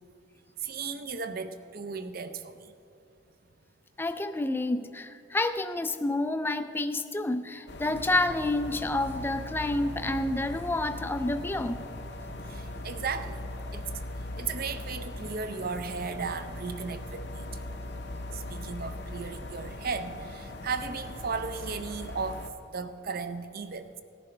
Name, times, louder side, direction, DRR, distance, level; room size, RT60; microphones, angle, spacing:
voice 1, 0.6-2.7 12.5-13.4 13.7-13.9 14.4-17.5 18.3-22.4 22.7-24.0, right 5 dB, 45° right, 10 dB, 0.6 m, -35 dB
voice 2, 4.0-11.9, left 2 dB, 10° left, 10 dB, 0.3 m, -29 dB
sound 1, 7.7-22.5, left 1 dB, 55° left, 0.7 m, -39 dB
18.0 x 11.0 x 3.3 m, 2.6 s
head